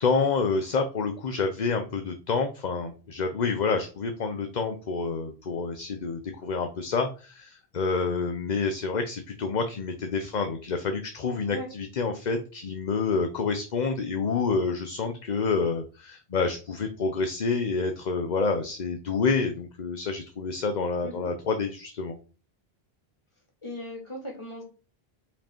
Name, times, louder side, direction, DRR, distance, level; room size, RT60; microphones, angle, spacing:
voice 1, 0.0-22.2, left 4 dB, 45° left, 6 dB, 0.8 m, -28 dB
voice 2, 23.6-24.6, left 1 dB, 30° left, -2 dB, 2.4 m, -38 dB
5.4 x 5.0 x 4.4 m, 0.36 s
omnidirectional pair, 1.1 m